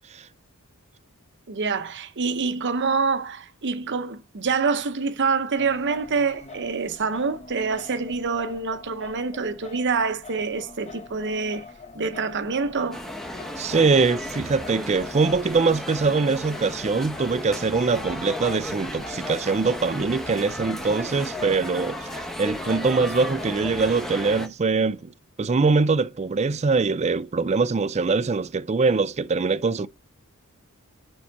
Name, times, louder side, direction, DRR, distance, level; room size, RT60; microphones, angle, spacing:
voice 1, 1.5-11.7 11.9-13.0, right 4 dB, 55° right, 0.7 m, -26 dB
Singing, 5.6-23.7, left 4 dB, 30° left, 0.9 m, -45 dB
sound 1, 12.9-24.5, left 1 dB, ahead, 0.9 m, -34 dB
voice 2, 13.6-22.1 22.4-25.1 25.4-29.9, right 4 dB, 30° right, 0.4 m, -23 dB
8.4 x 5.5 x 4.6 m
head